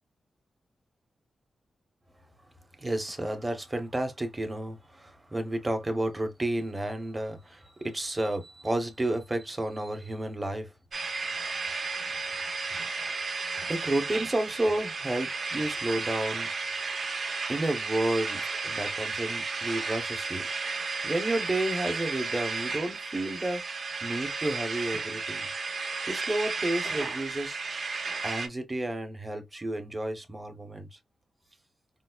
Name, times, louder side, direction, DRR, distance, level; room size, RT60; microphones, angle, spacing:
voice 1, 2.8-10.7 13.7-16.5 17.5-20.4 21.0-23.6 24.0-25.5 26.1-27.6 28.2-30.9, right 1 dB, 15° right, 0.9 m, -31 dB
sound 1, 10.9-28.5, right 4 dB, 50° right, 0.8 m, -33 dB
5.2 x 2.0 x 2.3 m
wide cardioid pair, 150°, 0 cm